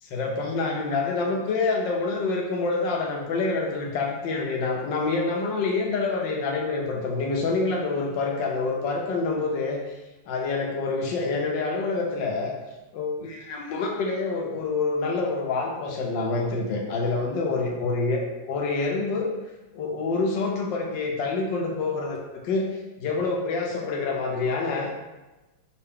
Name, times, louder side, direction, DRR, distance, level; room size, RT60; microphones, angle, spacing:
voice 1, 0.1-9.8 10.3-12.5 12.9-18.2 18.5-19.3 19.7-22.7 23.0-24.9, left 3 dB, 70° left, 0 dB, 1.3 m, -27 dB
5.5 x 2.5 x 3.5 m, 1.1 s
omnidirectional pair, 2.3 m